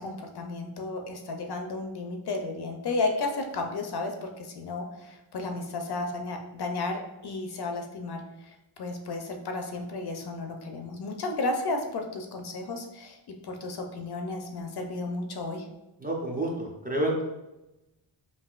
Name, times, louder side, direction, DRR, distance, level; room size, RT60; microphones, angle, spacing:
voice 1, 0.0-13.2 13.4-15.6, left 3 dB, 55° left, 4 dB, 0.5 m, -33 dB
voice 2, 16.0-17.2, right 1 dB, 20° right, -2 dB, 0.5 m, -29 dB
5.5 x 2.5 x 2.4 m, 0.97 s
wide cardioid pair, 170°, 49 cm